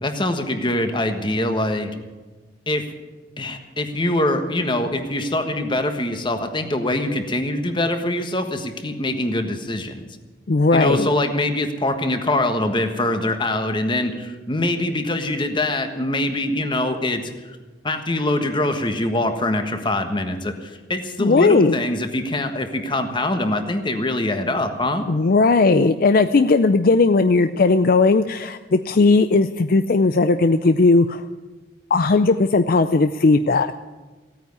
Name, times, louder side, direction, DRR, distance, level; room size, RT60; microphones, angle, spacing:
voice 1, 0.0-1.9 2.7-2.8 3.4-10.1 10.7-17.6 17.8-25.1, left 1 dB, 25° left, 7 dB, 1.4 m, -23 dB
voice 2, 10.5-11.1 21.2-21.8 25.1-31.2 31.9-33.7, left 3 dB, 55° left, 10 dB, 0.5 m, -17 dB
16.0 x 9.2 x 9.5 m, 1.3 s
head